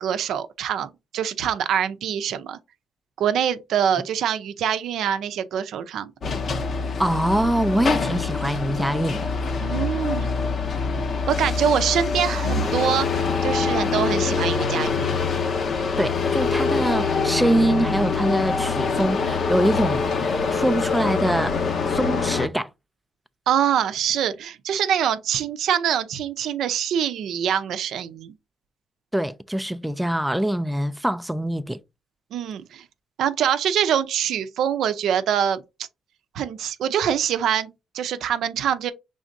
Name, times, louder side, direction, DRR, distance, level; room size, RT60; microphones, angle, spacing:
voice 1, 0.0-2.6 3.2-6.1 9.6-10.3 11.3-15.1 23.5-28.4 32.3-32.8 33.2-35.6 36.3-38.9, right 9 dB, 75° right, 0.5 m, -24 dB
sound 1, 6.2-22.5, left 5 dB, 55° left, 0.7 m, -24 dB
voice 2, 7.0-9.3 16.0-21.6 21.9-22.7 29.1-31.8, right 1 dB, 5° right, 0.3 m, -24 dB
5.1 x 3.4 x 2.6 m
cardioid pair, 90°, 0 cm